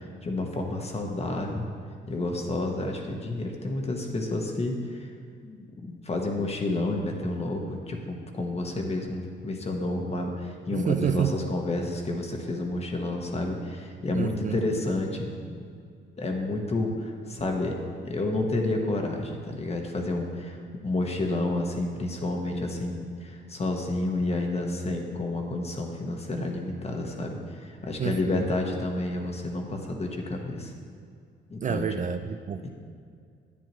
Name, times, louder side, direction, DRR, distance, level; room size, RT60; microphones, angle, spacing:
voice 1, 0.0-1.7 2.1-5.1 5.4-15.7 16.2-30.7 31.5-31.9 32.6-32.7, left 2 dB, 30° left, 2 dB, 1.4 m, -30 dB
voice 2, 10.7-11.4 14.1-14.6 28.0-28.5 31.6-32.7, right 8 dB, 40° right, 9 dB, 0.4 m, -29 dB
10.5 x 9.3 x 3.1 m, 2.3 s
cardioid pair, 90°, 20 cm